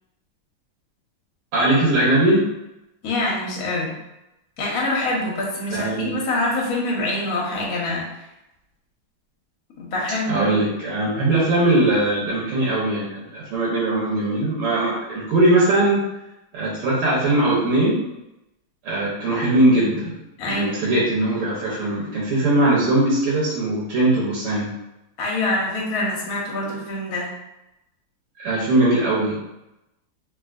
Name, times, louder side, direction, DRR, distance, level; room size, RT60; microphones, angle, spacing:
voice 1, 1.5-2.5 5.7-6.2 10.3-16.0 16.5-18.0 18.8-24.7 28.4-29.3, right 1 dB, 90° right, -7 dB, 1.8 m, -20 dB
voice 2, 3.0-3.9 4.6-8.0 9.8-10.6 20.4-20.8 25.2-27.3, left 2 dB, 55° left, -3 dB, 1.1 m, -25 dB
3.4 x 3.3 x 2.4 m, 0.92 s
omnidirectional pair, 2.4 m